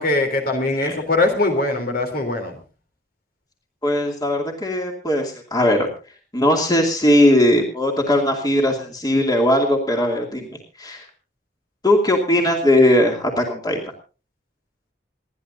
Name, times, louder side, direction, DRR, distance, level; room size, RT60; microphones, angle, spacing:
voice 1, 0.0-2.5, left 2 dB, 55° left, 5 dB, 3.5 m, -21 dB
voice 2, 3.8-5.9 6.3-10.5 10.8-11.0 11.8-13.8, left 1 dB, 20° left, 1 dB, 2.5 m, -19 dB
28.0 x 11.5 x 2.7 m, 0.34 s
head